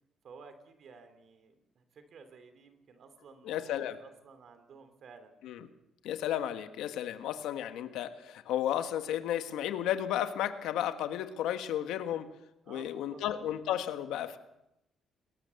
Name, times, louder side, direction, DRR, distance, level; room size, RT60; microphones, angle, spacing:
voice 1, 0.2-5.3 12.6-13.2, right 5 dB, 60° right, 9 dB, 3.0 m, -54 dB
voice 2, 3.4-4.0 5.4-5.6 6.0-12.3 12.7-14.4, left 11 dB, 90° left, 9 dB, 1.5 m, -33 dB
22.0 x 18.5 x 7.0 m, 0.87 s
cardioid pair, 90°, 0 cm